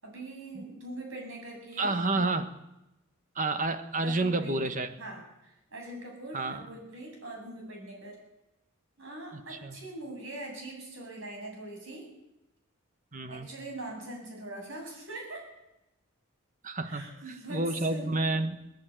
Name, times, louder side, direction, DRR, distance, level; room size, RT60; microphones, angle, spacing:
voice 1, 0.0-1.9 4.0-4.6 5.0-8.2 9.0-12.1 13.3-15.4 16.8-17.7 17.9-18.2, right 1 dB, 60° right, 1 dB, 7.9 m, -42 dB
voice 2, 1.8-2.5 3.3-4.9 6.3-6.7 9.3-9.8 13.1-13.5 16.6-18.6, right 2 dB, 35° right, 9 dB, 1.5 m, -30 dB
18.5 x 15.5 x 9.3 m, 0.90 s
head